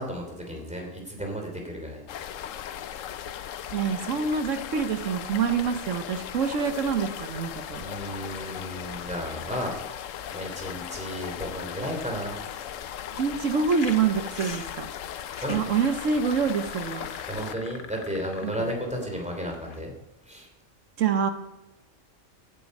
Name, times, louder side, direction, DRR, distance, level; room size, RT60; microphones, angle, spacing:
voice 1, 0.0-2.1 2.5-2.6 7.8-9.7 10.0-12.4 15.4-15.6 17.3-19.9 20.3-20.5, equal, 5° right, 2 dB, 3.0 m, -33 dB
sound 1, 2.1-17.5, left 10 dB, 90° left, 1.0 m, -37 dB
voice 2, 3.7-7.8 13.1-14.8 15.5-17.1 18.4-18.6 21.0-21.3, right 6 dB, 80° right, 8 dB, 1.3 m, -26 dB
sound 2, 13.7-19.8, left 4 dB, 45° left, 1.1 m, -44 dB
15.0 x 9.0 x 5.3 m, 1.0 s
omnidirectional pair, 1.3 m